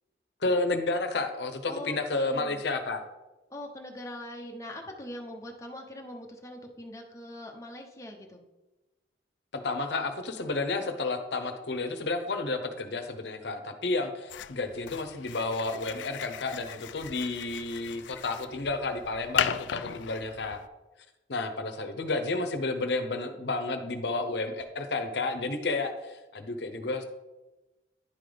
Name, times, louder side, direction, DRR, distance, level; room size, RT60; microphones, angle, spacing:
voice 1, 0.4-3.0 9.5-20.6 21.3-27.0, left 3 dB, 75° left, 7 dB, 0.8 m, -31 dB
voice 2, 1.7-2.6 3.5-8.4, left 1 dB, 15° left, 0 dB, 0.8 m, -42 dB
sound 1, 14.3-20.7, left 9 dB, 90° left, 0.4 m, -37 dB
10.0 x 3.9 x 5.0 m, 1.1 s
head